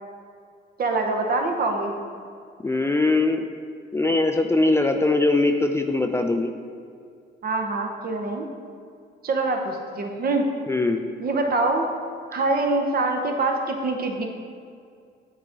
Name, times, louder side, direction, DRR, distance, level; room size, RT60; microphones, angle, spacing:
voice 1, 0.8-2.0 7.4-8.5 9.2-10.4 11.2-11.9 12.3-14.3, right 3 dB, 50° right, 3 dB, 0.9 m, -24 dB
voice 2, 2.6-3.5 3.9-6.5 10.7-11.0, left 2 dB, 15° left, 5 dB, 0.3 m, -21 dB
8.6 x 3.6 x 3.9 m, 2.3 s
cardioid pair, 90°, 20 cm